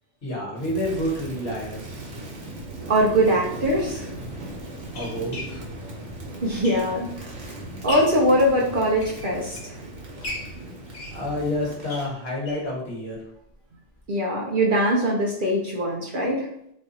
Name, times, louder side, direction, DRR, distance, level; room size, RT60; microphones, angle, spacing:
voice 1, 0.2-2.1 4.9-5.6 11.1-13.2, left 1 dB, 60° left, -5 dB, 1.5 m, -29 dB
Crackle, 0.5-12.1, right 1 dB, 90° right, 1.3 m, -38 dB
voice 2, 2.9-4.1 6.4-7.5 7.8-9.8 14.1-16.5, equal, 50° right, -2 dB, 0.7 m, -22 dB
sound 1, 4.7-7.2 7.6-8.3 8.8-9.8 10.2-12.7 13.1-13.2 13.5-13.6 13.9-14.0, left 2 dB, 40° left, 0.8 m, -38 dB
3.2 x 2.4 x 4.0 m, 0.74 s
omnidirectional pair, 1.2 m